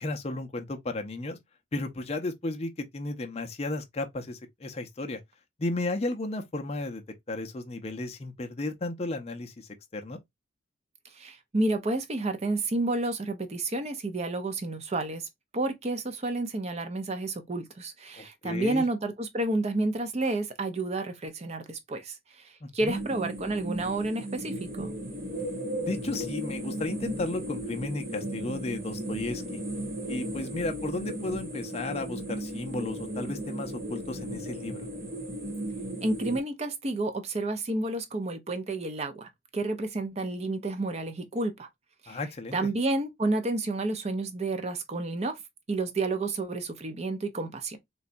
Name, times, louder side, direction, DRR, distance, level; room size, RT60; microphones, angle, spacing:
voice 1, 0.0-1.4 1.7-5.2 5.6-7.0 7.3-10.2 18.2-18.8 22.6-23.0 25.8-29.6 30.1-34.9 42.1-42.6, left 2 dB, 30° left, 0.5 m, -34 dB
voice 2, 11.1-15.2 15.5-22.4 22.7-24.9 36.0-41.7 42.0-42.2 42.5-45.4 45.7-47.8, right 2 dB, 35° right, 0.5 m, -30 dB
sound 1, 22.9-36.4, right 1 dB, 50° right, 0.8 m, -35 dB
3.9 x 2.2 x 2.5 m
head